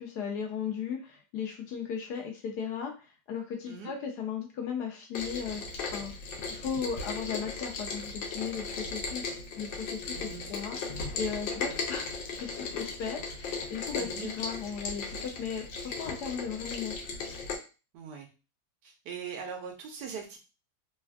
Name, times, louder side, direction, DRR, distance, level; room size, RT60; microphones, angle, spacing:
voice 1, 0.0-6.1 6.5-12.1 12.3-16.9, left 7 dB, 70° left, 2 dB, 1.1 m, -36 dB
Rain, 5.1-17.6, left 4 dB, 85° left, 1.3 m, -37 dB
voice 2, 10.1-10.5 11.7-11.8 13.9-14.3 17.9-18.3 18.8-20.4, right 6 dB, 75° right, 3 dB, 1.1 m, -41 dB
3.3 x 2.3 x 2.3 m, 0.32 s
omnidirectional pair, 2.0 m